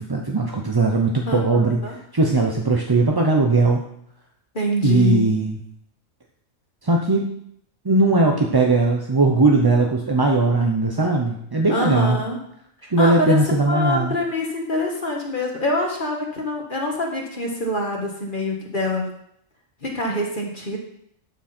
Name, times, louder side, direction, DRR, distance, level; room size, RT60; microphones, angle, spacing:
voice 1, 0.0-1.8 2.1-3.8 4.8-5.6 6.8-7.3 7.8-12.2 12.9-14.1, right 3 dB, 25° right, 1 dB, 0.6 m, -19 dB
voice 2, 1.3-2.0 4.5-5.3 11.7-12.4 12.8-13.4 13.7-19.1 19.8-20.8, left 2 dB, 40° left, 0 dB, 1.7 m, -25 dB
11.5 x 6.3 x 4.4 m, 0.71 s
omnidirectional pair, 1.4 m